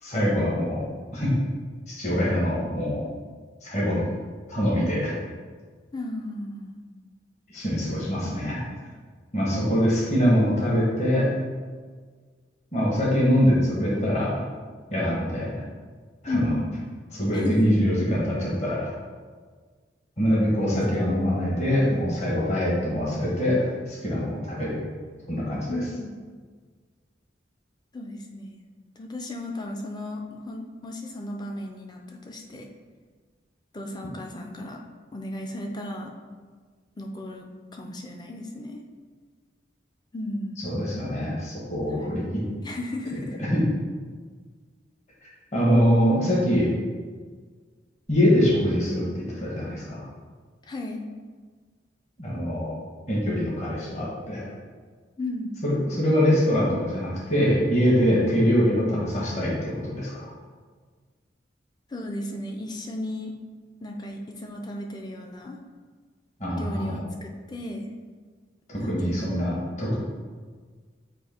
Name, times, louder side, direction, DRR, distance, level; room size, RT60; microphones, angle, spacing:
voice 1, 0.0-0.8 1.1-1.3 1.9-3.0 3.6-4.1 4.5-5.1 7.5-8.6 9.3-11.3 12.7-14.4 14.9-15.5 16.2-16.5 17.1-18.9 20.2-24.8 25.3-25.8 40.6-42.4 43.5-43.6 45.5-46.7 48.1-50.0 52.2-52.8 53.1-54.4 55.6-60.3 66.4-67.0 68.7-70.0, equal, 40° left, -6 dB, 1.4 m, -23 dB
voice 2, 5.9-6.8 16.3-16.7 17.3-17.7 25.7-26.2 27.9-28.6 29.0-32.7 33.7-34.8 35.1-36.1 37.0-38.8 40.1-40.6 41.9-42.3 42.6-43.4 50.6-51.0 55.2-55.6 61.9-63.3 63.8-65.6 66.6-67.8 68.8-69.4, left 1 dB, 20° left, 2 dB, 0.5 m, -34 dB
7.6 x 2.8 x 4.4 m, 1.5 s
head